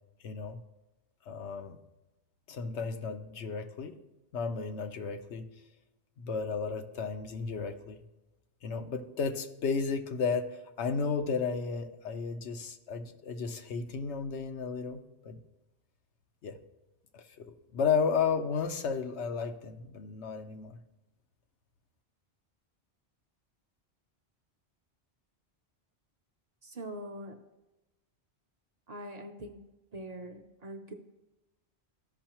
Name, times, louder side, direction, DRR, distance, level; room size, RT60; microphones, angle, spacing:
voice 1, 0.2-0.6 1.3-1.8 2.5-4.0 4.3-5.5 6.2-8.0 8.6-15.4 16.4-16.6 17.1-20.8, left 5 dB, 90° left, 7 dB, 1.0 m, -33 dB
voice 2, 26.6-27.3 28.9-29.6 29.9-30.9, right 1 dB, 45° right, 4 dB, 0.7 m, -43 dB
14.0 x 5.5 x 2.9 m, 1.0 s
omnidirectional pair, 1.1 m